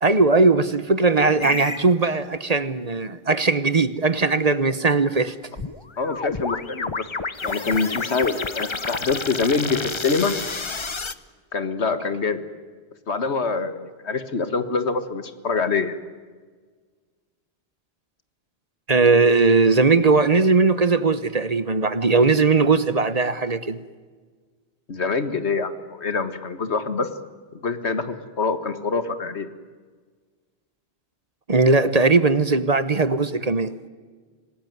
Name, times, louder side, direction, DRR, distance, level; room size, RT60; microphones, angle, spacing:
voice 1, 0.0-5.3 18.9-23.8 31.5-33.7, right 3 dB, 40° right, 14 dB, 1.1 m, -19 dB
sound 1, 1.4-1.9 5.6-11.1, left 4 dB, 30° left, 0.9 m, -30 dB
voice 2, 6.0-7.1 7.4-10.4 11.5-12.4 13.1-16.0 24.9-27.1 27.5-29.5, left 4 dB, 90° left, 11 dB, 2.0 m, -25 dB
26.5 x 19.5 x 9.4 m, 1.5 s
omnidirectional pair, 1.1 m